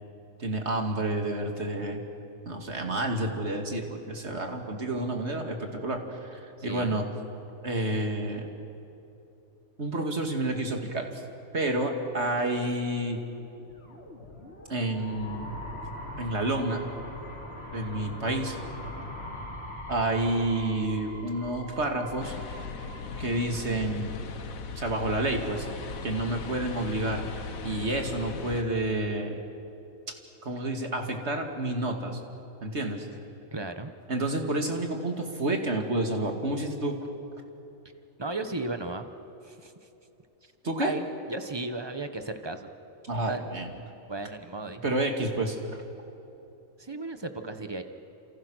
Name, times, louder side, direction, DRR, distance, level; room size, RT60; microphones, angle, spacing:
voice 1, 0.4-2.0 2.5-7.1 7.6-8.5 9.8-11.1 11.5-13.2 14.7-15.6 16.2-16.8 17.7-18.6 19.9-22.3 23.2-24.1 24.8-25.7 26.0-27.2 27.6-29.4 30.4-32.2 32.6-33.1 34.1-37.0 40.6-40.9 43.0-43.7 44.8-45.8, right 1 dB, 55° right, 3 dB, 2.6 m, -29 dB
voice 2, 6.6-7.0 33.5-33.9 38.2-39.1 39.4-39.9 40.4-40.5 40.8-42.7 43.3-43.5 44.1-44.9 46.8-47.8, right 2 dB, 20° right, 8 dB, 1.2 m, -35 dB
sound 1, 13.5-24.4, left 1 dB, 50° left, 3.5 m, -42 dB
sound 2, 22.2-28.6, left 4 dB, 90° left, 1.6 m, -38 dB
29.5 x 27.5 x 6.4 m, 2.9 s
omnidirectional pair, 1.4 m